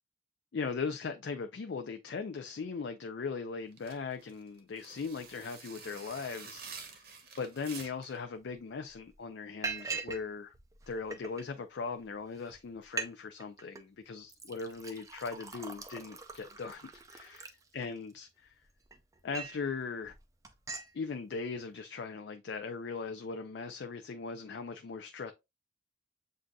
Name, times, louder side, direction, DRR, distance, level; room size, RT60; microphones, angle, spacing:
voice 1, 0.5-7.1 7.4-10.5 10.9-18.5 19.2-20.2 20.9-25.3, left 5 dB, 60° left, 0.4 m, -39 dB
sound 1, 3.7-8.2, right 5 dB, 50° right, 0.9 m, -49 dB
Liquid, 8.5-8.6 8.9-9.1 9.6-10.2 10.5-11.4 12.1-12.2 12.5-12.6 12.8-13.1 13.4-13.8 14.3-18.1 18.6-19.6 20.0-20.2 20.4-20.9, right 4 dB, 15° right, 0.4 m, -41 dB
7.6 x 2.6 x 2.2 m
head